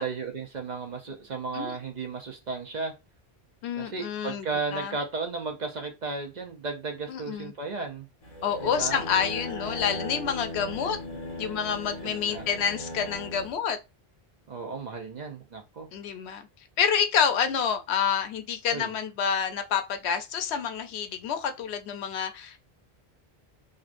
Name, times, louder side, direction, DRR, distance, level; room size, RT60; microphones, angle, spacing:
voice 1, 0.0-2.9 3.8-8.1 8.6-9.0 12.0-12.4 14.5-15.9 18.7-18.9, right 4 dB, 50° right, 0.6 m, -34 dB
voice 2, 3.6-4.5 4.7-4.9 7.1-7.5 8.4-11.0 11.4-13.8 15.9-16.4 16.8-22.6, left 7 dB, 90° left, 0.9 m, -28 dB
sound 1, 8.2-13.5, left 1 dB, 35° left, 1.2 m, -37 dB
3.1 x 2.6 x 2.5 m
omnidirectional pair, 1.1 m